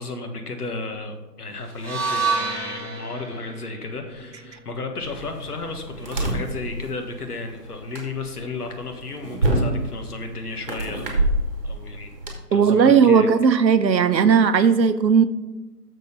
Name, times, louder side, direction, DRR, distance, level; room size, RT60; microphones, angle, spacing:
voice 1, 0.0-11.3 11.6-12.1 12.5-13.3, left 3 dB, 65° left, 4 dB, 1.6 m, -33 dB
sound 1, 1.7-5.9, right 4 dB, 5° left, 2.0 m, -30 dB
sound 2, 5.0-12.3, right 1 dB, 35° right, 1.4 m, -28 dB
voice 2, 12.5-15.2, right 6 dB, 90° right, 11 dB, 0.9 m, -16 dB
6.7 x 6.4 x 5.1 m, 1.1 s
hypercardioid pair, 175°, 50 cm